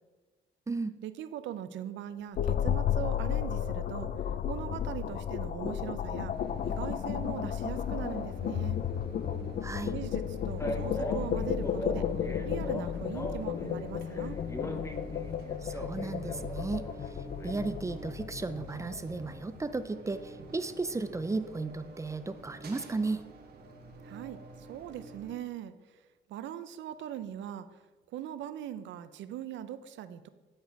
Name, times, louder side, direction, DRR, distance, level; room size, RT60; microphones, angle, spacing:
voice 1, 1.0-4.1 4.5-6.3 6.6-8.8 9.9-12.0 12.4-14.4 24.0-25.8 26.3-27.8 28.1-30.3, right 10 dB, 80° right, 13 dB, 0.5 m, -40 dB
sound 1, 2.4-19.6, left 9 dB, 50° left, 0.4 m, -33 dB
sound 2, 6.3-25.3, right 2 dB, 55° right, 1.3 m, -50 dB
voice 2, 9.6-9.9 15.6-16.9 17.4-23.2, right 3 dB, 15° right, 11 dB, 0.4 m, -34 dB
Male speech man speaking, 10.6-13.8 14.1-17.5, equal, 15° left, 0.9 m, -40 dB
9.4 x 4.4 x 4.6 m, 1.3 s
cardioid pair, 95°, 19 cm